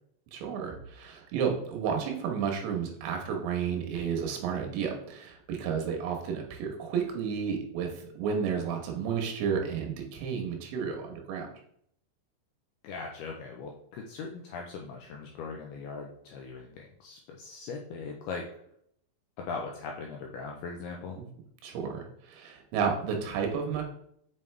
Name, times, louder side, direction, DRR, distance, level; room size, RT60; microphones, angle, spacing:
voice 1, 0.3-11.5 21.2-21.3 21.6-23.8, right 6 dB, 80° right, 3 dB, 3.4 m, -32 dB
voice 2, 12.8-18.5 19.4-21.2, left 4 dB, 90° left, 1 dB, 2.2 m, -40 dB
6.9 x 5.3 x 3.3 m, 0.69 s
omnidirectional pair, 5.3 m